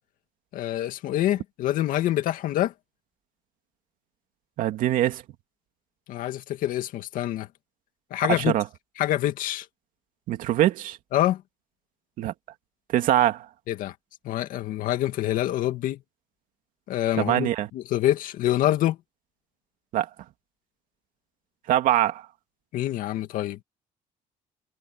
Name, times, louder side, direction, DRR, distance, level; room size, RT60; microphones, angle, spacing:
voice 1, 0.5-2.7 6.1-7.5 8.1-8.5 9.0-9.7 11.1-11.4 13.7-13.9 14.2-16.0 16.9-19.0 22.7-23.6, left 13 dB, 80° left, 2.2 m, -26 dB
voice 2, 4.6-5.2 8.3-8.6 10.3-11.0 12.2-12.3 12.9-13.5 17.2-17.7 19.9-20.1 21.7-22.3, right 13 dB, 75° right, 2.5 m, -23 dB
cardioid pair, 110°, 14 cm